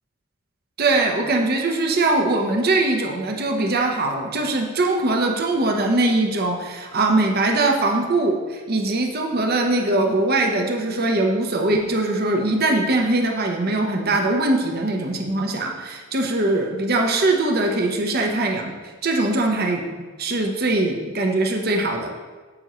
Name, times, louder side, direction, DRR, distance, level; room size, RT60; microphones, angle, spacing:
voice 1, 0.8-18.7 19.0-19.9 20.2-22.1, right 2 dB, 50° right, 2 dB, 0.9 m, -21 dB
8.9 x 7.9 x 3.1 m, 1.4 s
head